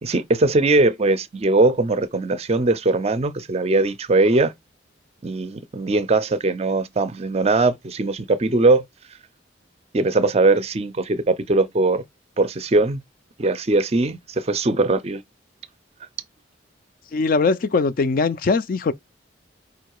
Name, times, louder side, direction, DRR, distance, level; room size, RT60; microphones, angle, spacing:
voice 1, 0.0-4.5 5.2-8.8 9.9-12.0 12.4-13.0 13.4-15.2, right 2 dB, 35° right, 0.4 m, -20 dB
voice 2, 17.1-18.9, left 4 dB, 45° left, 0.4 m, -21 dB
5.0 x 2.3 x 4.6 m
head